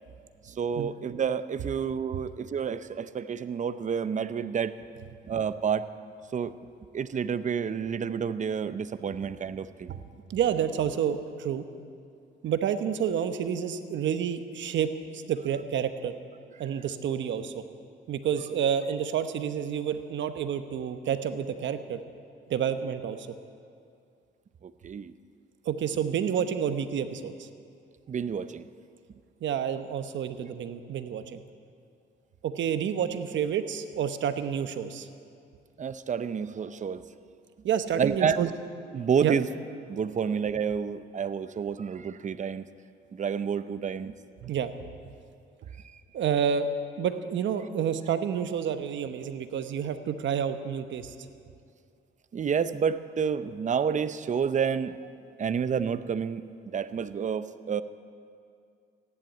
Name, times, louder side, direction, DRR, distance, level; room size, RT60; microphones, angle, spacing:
voice 1, 0.4-4.8 5.3-5.8 6.3-6.5 6.9-9.9 24.6-25.1 28.1-28.6 35.8-37.1 38.0-38.5 38.9-39.5 39.9-42.7 43.1-44.1 45.8-46.0 52.3-55.1 55.4-57.8, right 7 dB, 40° right, 13 dB, 0.7 m, -29 dB
voice 2, 10.3-11.7 12.4-16.1 16.6-17.6 18.1-22.0 22.5-23.3 25.6-27.5 29.4-31.4 32.4-35.1 37.6-38.5 39.2-39.4 44.0-44.1 44.4-44.7 46.1-46.7 47.0-51.1, right 8 dB, 70° right, 9 dB, 1.0 m, -29 dB
14.5 x 11.0 x 8.9 m, 2.4 s
cardioid pair, 90°, 20 cm